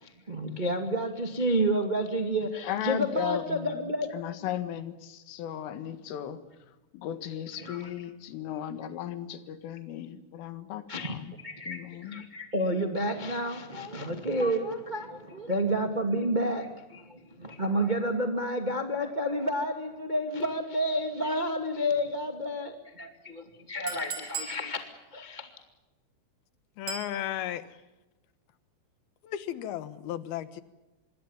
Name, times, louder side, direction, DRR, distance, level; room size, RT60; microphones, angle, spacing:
voice 1, 0.0-4.1 4.4-4.5 7.6-7.9 10.9-25.5, equal, 65° right, 5 dB, 0.4 m, -30 dB
voice 2, 2.6-6.4 6.9-11.4 11.7-12.2, left 10 dB, 90° left, 10 dB, 4.3 m, -36 dB
Chink clink, 23.9-24.6 26.9-27.1, right 5 dB, 35° right, 4.7 m, -36 dB
voice 3, 26.8-27.8 29.2-30.6, left 11 dB, 70° left, 13 dB, 2.6 m, -34 dB
26.5 x 23.0 x 7.3 m, 1.1 s
omnidirectional pair, 5.6 m